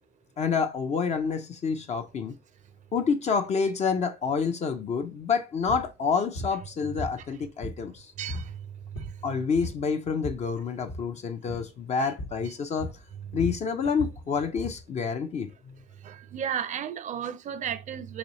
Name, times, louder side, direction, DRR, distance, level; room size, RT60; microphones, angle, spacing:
voice 1, 0.4-2.4 2.9-8.1 9.2-13.0 13.3-15.8, left 5 dB, 40° left, 0.5 m, -28 dB
sound 1, 5.7-5.9 6.3-6.6 7.0-8.0 8.3-8.5 8.8-9.3 9.5-10.5 10.8-11.1 11.5-11.7 12.2-12.4 12.8-14.8, left 1 dB, 80° left, 1.1 m, -37 dB
voice 2, 8.2-8.6 8.9-9.1 16.0-18.2, right 9 dB, 45° right, 0.5 m, -33 dB
4.0 x 3.1 x 2.9 m
cardioid pair, 110°, 17 cm